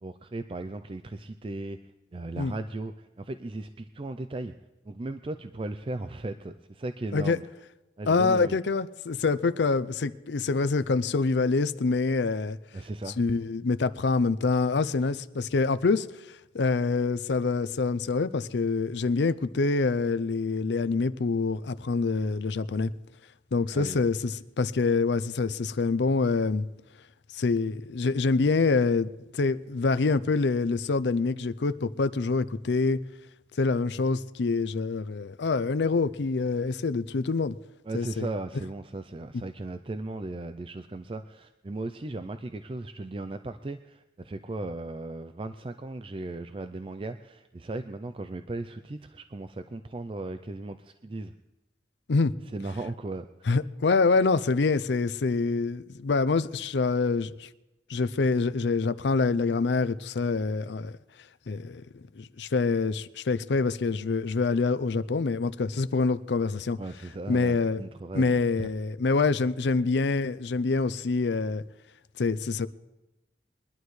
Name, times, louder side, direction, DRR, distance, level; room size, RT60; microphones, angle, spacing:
voice 1, 0.0-1.8 2.1-4.5 4.8-7.4 8.0-8.6 12.7-13.2 23.7-24.1 37.8-51.3 52.5-53.2 66.8-68.7, right 2 dB, 30° right, 0.4 m, -37 dB
voice 2, 8.1-12.6 13.2-16.1 16.5-22.9 23.5-26.7 27.3-29.1 29.3-33.0 33.6-37.6 37.9-38.3 52.1-52.3 53.5-57.5 57.9-61.0 61.5-66.8 67.3-67.8 68.1-71.6 72.2-72.7, left 4 dB, 75° left, 0.5 m, -26 dB
22.5 x 11.5 x 3.2 m
head